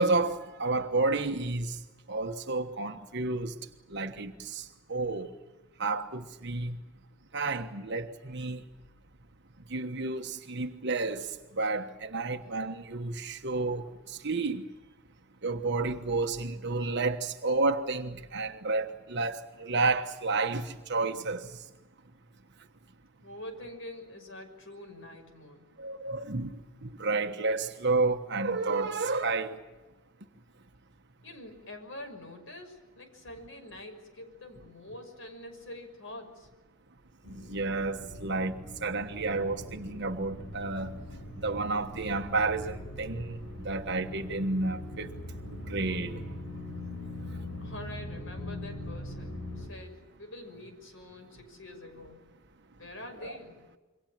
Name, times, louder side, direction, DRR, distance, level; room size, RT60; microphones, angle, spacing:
voice 1, 0.0-1.8 2.1-3.5 3.9-5.3 5.8-6.8 7.3-8.6 9.7-14.6 15.4-21.5 25.8-29.6 37.3-38.5 38.8-40.9 41.4-45.1 45.7-46.2 53.2-53.3, right 3 dB, 55° right, 1.3 m, -31 dB
voice 2, 23.2-25.7 31.2-36.5 47.6-52.2 52.8-53.6, left 1 dB, 65° left, 6.2 m, -45 dB
sound 1, 37.2-49.7, left 1 dB, 85° left, 6.5 m, -41 dB
27.5 x 24.0 x 7.5 m
head